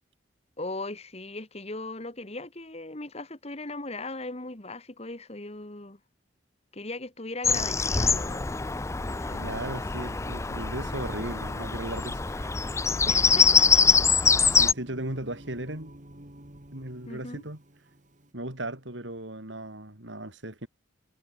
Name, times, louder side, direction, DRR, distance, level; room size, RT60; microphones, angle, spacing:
voice 1, 0.6-6.0 6.7-8.5 9.0-9.4 13.1-14.0 17.1-17.4, left 2 dB, 35° left, 2.3 m, -38 dB
Bird vocalization bird call bird song, 7.4-14.7, left 5 dB, 15° left, 0.5 m, -24 dB
voice 2, 9.3-12.5 12.9-13.0 14.4-15.9 16.7-17.6 18.3-20.7, right 1 dB, 80° right, 5.8 m, -37 dB
Singing, 12.9-18.3, right 1 dB, 40° right, 2.8 m, -48 dB
head